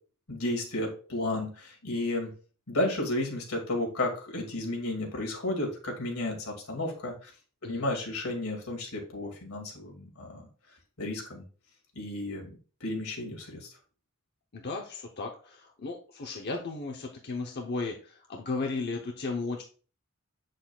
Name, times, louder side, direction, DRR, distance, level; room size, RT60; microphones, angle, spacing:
voice 1, 0.3-2.3 2.7-7.3 7.6-10.4 11.0-11.4 12.0-12.5 12.8-13.7, left 1 dB, 85° left, 1 dB, 2.3 m, -32 dB
voice 2, 14.5-19.6, left 3 dB, 50° left, 2 dB, 0.8 m, -35 dB
7.7 x 6.5 x 2.3 m, 0.38 s
head